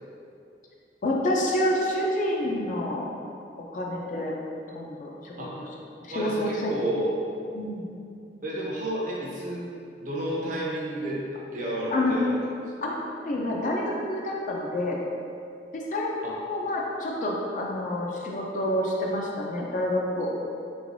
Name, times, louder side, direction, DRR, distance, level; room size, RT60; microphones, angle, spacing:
voice 1, 1.0-3.1 3.7-4.3 4.7-5.3 6.0-6.7 7.5-7.9 11.9-12.1 12.8-15.0 15.7-20.3, left 1 dB, 45° left, -2 dB, 0.4 m, -28 dB
voice 2, 6.1-7.2 8.4-9.7 10.0-11.2 11.5-12.3 16.2-16.4, right 1 dB, 45° right, -5 dB, 0.7 m, -30 dB
3.3 x 3.2 x 2.6 m, 2.5 s
head